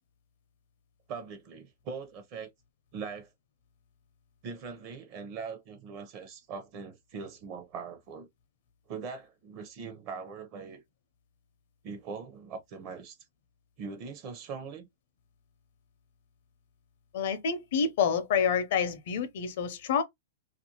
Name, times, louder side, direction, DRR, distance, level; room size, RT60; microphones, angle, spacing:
voice 1, 1.1-2.5 2.9-3.3 4.4-8.3 8.9-10.8 11.8-13.2 13.8-14.9, right 5 dB, 40° right, 0.6 m, -41 dB
voice 2, 17.1-20.0, left 6 dB, 60° left, 0.5 m, -28 dB
2.5 x 2.3 x 2.8 m
hypercardioid pair, 135°, 0 cm